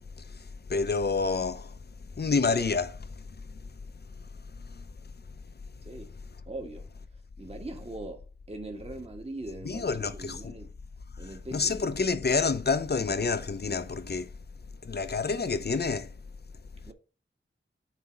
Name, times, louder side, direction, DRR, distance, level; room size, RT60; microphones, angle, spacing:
voice 1, 0.7-1.7 2.2-3.1 9.6-10.6 11.5-14.3 14.8-16.1, left 4 dB, 50° left, 0.6 m, -28 dB
voice 2, 6.4-6.8 7.4-10.7 11.2-12.0 16.8-16.9, right 2 dB, 30° right, 1.3 m, -41 dB
8.1 x 2.9 x 5.2 m
wide cardioid pair, 70°, 21 cm